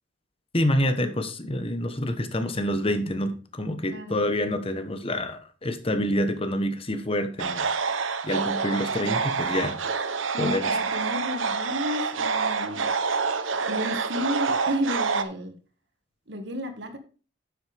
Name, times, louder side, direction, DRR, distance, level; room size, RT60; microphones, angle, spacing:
voice 1, 0.5-7.7 8.2-9.8 10.4-10.7, left 1 dB, 30° left, 8 dB, 1.2 m, -27 dB
voice 2, 3.9-4.2 8.4-8.5 9.0-9.2 10.3-12.9 13.7-15.5 16.3-17.0, equal, 60° right, 6 dB, 1.8 m, -32 dB
sound 1, 7.4-15.2, right 5 dB, 80° right, 0.9 m, -27 dB
10.0 x 7.9 x 3.5 m, 0.36 s
head